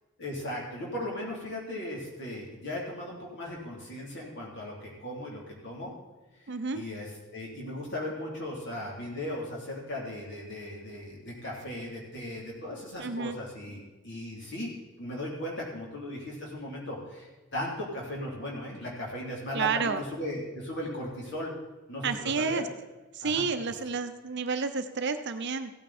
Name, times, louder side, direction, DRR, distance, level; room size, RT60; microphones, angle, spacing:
voice 1, 0.2-5.9 6.4-14.7 15.0-21.5 21.9-22.6 23.2-23.5, left 1 dB, 50° left, -3 dB, 3.4 m, -37 dB
voice 2, 6.5-6.8 13.0-13.4 19.5-20.0 22.0-22.6 23.1-25.7, right 5 dB, 50° right, 9 dB, 0.7 m, -30 dB
15.5 x 9.0 x 4.3 m, 1.2 s
head